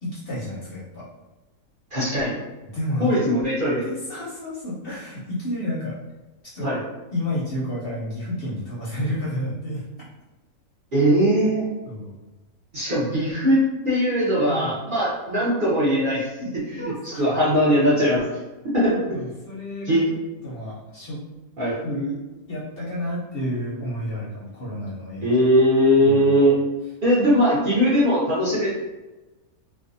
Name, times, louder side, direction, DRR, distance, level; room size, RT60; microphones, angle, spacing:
voice 1, 0.0-1.0 2.7-3.2 3.8-6.0 6.5-6.7 7.1-9.8 11.9-12.1 14.5-14.7 16.4-16.5 16.8-17.6 19.1-21.2 21.8-22.2 22.5-25.5 26.0-26.3, left 1 dB, 55° left, -8 dB, 0.7 m, -31 dB
voice 2, 1.9-2.3 3.0-3.8 6.6-6.8 10.9-11.7 12.7-13.6 13.8-16.3 16.8-16.9 17.2-18.3 18.6-19.2 19.9-20.0 21.6-21.8 25.2-26.6 27.0-28.7, equal, 50° right, -9 dB, 0.7 m, -20 dB
2.6 x 2.2 x 2.5 m, 1.1 s
omnidirectional pair, 1.5 m